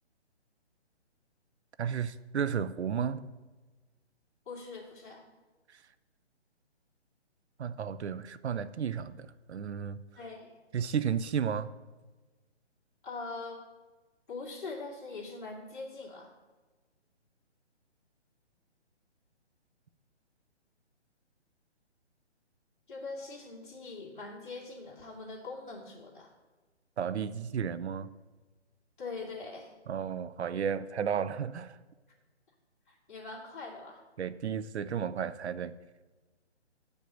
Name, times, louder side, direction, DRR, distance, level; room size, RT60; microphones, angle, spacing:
voice 1, 1.8-3.3 7.6-10.0 10.7-11.7 27.0-28.1 29.9-31.8 34.2-35.7, right 7 dB, 75° right, 15 dB, 0.5 m, -33 dB
voice 2, 4.5-5.2 10.2-10.5 13.0-13.6 14.3-16.3 22.9-26.3 29.0-29.7 32.9-34.0, left 3 dB, 45° left, -3 dB, 2.6 m, -42 dB
8.1 x 5.3 x 7.5 m, 1.3 s
hypercardioid pair, 175°, 34 cm